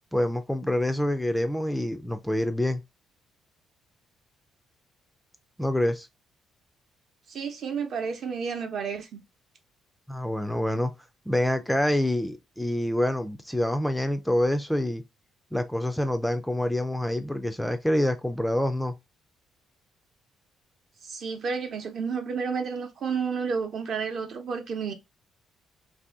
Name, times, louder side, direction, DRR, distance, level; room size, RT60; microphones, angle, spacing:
voice 1, 0.1-2.8 5.6-6.1 10.1-10.9 11.3-15.0 15.5-18.9, left 1 dB, 5° left, 0.3 m, -26 dB
voice 2, 7.3-9.2 21.0-24.9, right 5 dB, 55° right, 0.7 m, -31 dB
2.7 x 2.6 x 3.4 m
cardioid pair, 115°, 0 cm